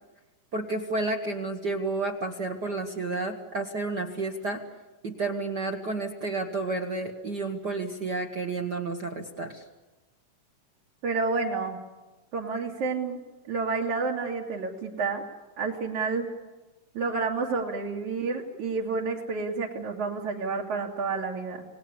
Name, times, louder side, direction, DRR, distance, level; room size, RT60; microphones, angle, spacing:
voice 1, 0.5-4.6 5.0-9.6, right 3 dB, 40° right, 4 dB, 1.6 m, -31 dB
voice 2, 11.0-11.8 12.3-13.2 13.5-15.2 15.6-16.3 17.0-21.7, right 4 dB, 65° right, -3 dB, 3.9 m, -29 dB
30.0 x 19.5 x 8.6 m, 1.1 s
omnidirectional pair, 3.7 m